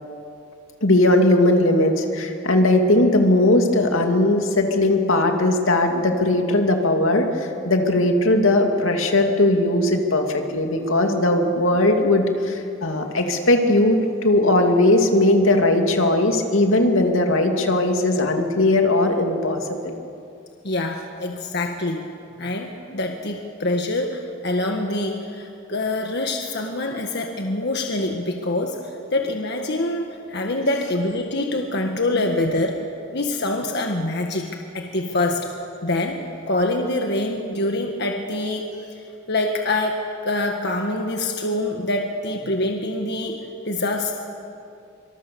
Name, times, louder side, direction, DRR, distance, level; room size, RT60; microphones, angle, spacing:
voice 1, 0.8-19.9 32.1-32.3, left 1 dB, 80° left, 3 dB, 2.6 m, -19 dB
voice 2, 20.6-22.1 22.4-32.8 33.1-35.5 35.8-44.1, left 2 dB, 55° left, 3 dB, 1.6 m, -25 dB
25.5 x 25.5 x 7.0 m, 2.5 s
head